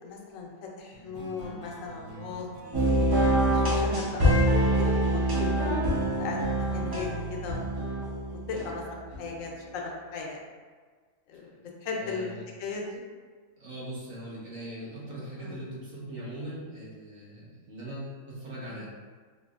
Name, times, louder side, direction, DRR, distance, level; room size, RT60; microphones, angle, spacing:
voice 1, 0.0-5.3 5.6-7.6 8.3-10.4 11.3-11.5 11.8-13.0 15.4-15.6 18.7-18.8, left 4 dB, 80° left, -1 dB, 1.0 m, -38 dB
sound 1, 0.9-5.8, right 2 dB, 50° right, 0.7 m, -45 dB
sound 2, 2.7-9.2, right 1 dB, 35° right, 0.3 m, -25 dB
voice 2, 12.0-12.4 13.6-18.9, right 1 dB, 85° right, -8 dB, 1.5 m, -40 dB
4.4 x 2.0 x 2.4 m, 1.5 s
omnidirectional pair, 1.4 m